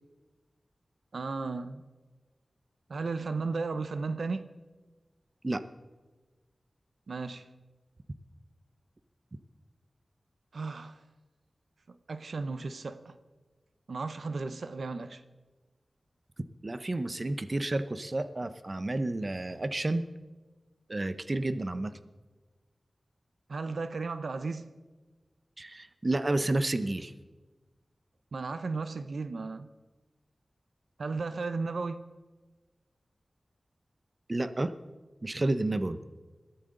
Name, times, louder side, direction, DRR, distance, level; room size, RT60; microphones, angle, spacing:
voice 1, 1.1-1.8 2.9-4.5 7.1-7.5 10.5-11.0 11.9-13.2 13.9-15.2 23.5-24.7 28.3-29.7 31.0-32.0, right 4 dB, 80° right, 0.7 m, -35 dB
voice 2, 16.6-20.1 20.9-21.9 25.6-27.1 34.3-34.7 35.2-36.0, right 2 dB, 40° right, 0.8 m, -30 dB
21.0 x 14.0 x 3.9 m
wide cardioid pair, 70°, 0 cm